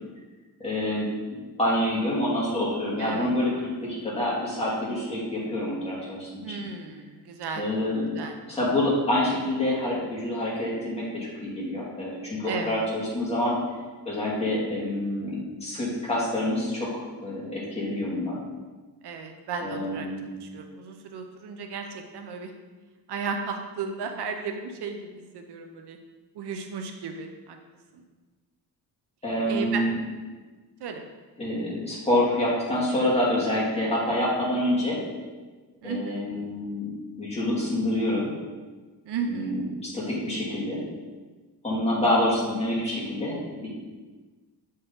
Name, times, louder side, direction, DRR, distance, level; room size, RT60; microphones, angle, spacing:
voice 1, 0.6-1.1 1.6-6.4 7.6-8.1 8.5-13.5 14.1-18.4 19.6-20.3 29.2-30.0 31.4-35.0 35.8-36.9 37.2-38.3 39.3-40.8 41.6-43.7, left 1 dB, 15° left, -7 dB, 2.1 m, -27 dB
voice 2, 3.0-3.3 6.4-7.7 8.1-8.3 12.5-12.8 19.0-20.1 20.4-22.5 23.1-25.1 25.3-26.0 26.3-27.6 27.9-28.0 29.5-29.8 30.8-31.0 35.8-36.3 39.1-39.6, right 5 dB, 75° right, 5 dB, 0.7 m, -34 dB
7.9 x 4.0 x 3.9 m, 1.3 s
cardioid pair, 140°, 40 cm